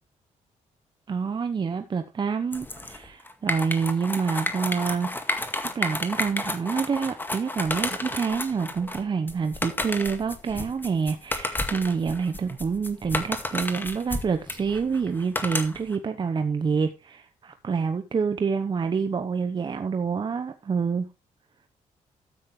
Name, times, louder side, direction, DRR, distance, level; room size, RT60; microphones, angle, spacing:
voice 1, 1.1-21.1, right 5 dB, 35° right, 1.0 m, -27 dB
sound 1, 2.5-16.0, left 2 dB, 15° left, 2.0 m, -31 dB
13.5 x 8.6 x 3.3 m
cardioid pair, 100°, 13 cm